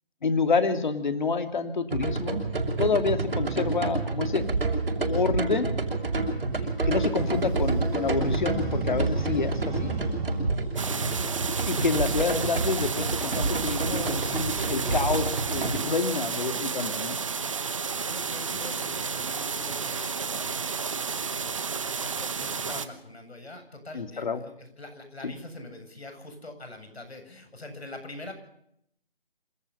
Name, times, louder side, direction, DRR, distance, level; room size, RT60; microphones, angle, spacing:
voice 1, 0.2-2.4 2.8-4.5 5.0-5.7 6.9-10.0 11.7-17.1 23.9-24.4 25.2-25.3, left 4 dB, 50° left, 8 dB, 2.8 m, -28 dB
sound 1, 1.9-15.8, right 3 dB, 65° right, 6.2 m, -28 dB
sound 2, 5.7-10.4, right 2 dB, 5° right, 3.7 m, -35 dB
voice 2, 6.3-6.7 9.6-10.1 10.8-11.0 16.1-16.6 17.9-28.3, left 2 dB, 90° left, 6 dB, 7.7 m, -44 dB
the sound of big stream in the winter mountain forest - rear, 10.8-22.9, right 5 dB, 30° right, 1.2 m, -32 dB
27.5 x 17.0 x 5.6 m, 0.71 s
figure-of-eight pair, 170°, 31 cm